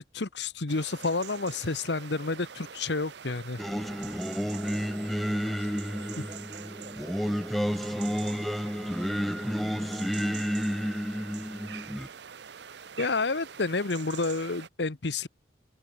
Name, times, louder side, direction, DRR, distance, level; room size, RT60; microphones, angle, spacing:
voice 1, 0.0-3.6 13.0-15.3, left 3 dB, 70° left, 1.2 m, -30 dB
sound 1, 0.7-14.7, right 7 dB, 70° right, 0.7 m, -45 dB
Singing, 3.6-12.1, equal, ahead, 0.4 m, -31 dB
voice 2, 5.5-11.9, right 1 dB, 30° right, 3.1 m, -54 dB
open air
head